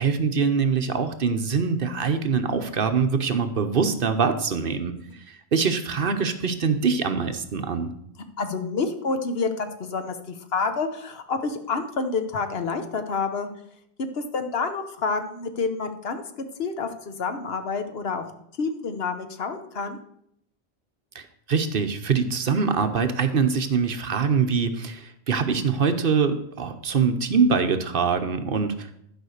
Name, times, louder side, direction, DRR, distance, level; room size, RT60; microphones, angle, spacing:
voice 1, 0.0-4.9 5.3-7.9 21.1-28.9, right 5 dB, 60° right, 8 dB, 1.0 m, -24 dB
voice 2, 8.4-13.5 14.0-16.2 16.6-18.2 18.6-20.0, left 4 dB, 70° left, 8 dB, 1.2 m, -28 dB
11.5 x 5.1 x 6.5 m, 0.73 s
omnidirectional pair, 1.1 m